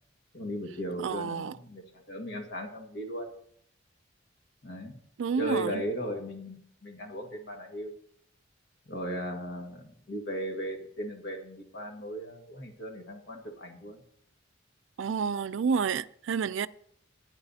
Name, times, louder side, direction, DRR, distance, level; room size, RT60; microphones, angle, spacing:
voice 1, 0.3-3.3 4.6-5.0 5.4-7.9 8.9-14.0, equal, 60° left, 1.8 m, -37 dB
voice 2, 1.0-1.6 5.2-5.8 15.0-16.7, right 6 dB, 70° right, 0.4 m, -29 dB
16.0 x 9.7 x 2.8 m
head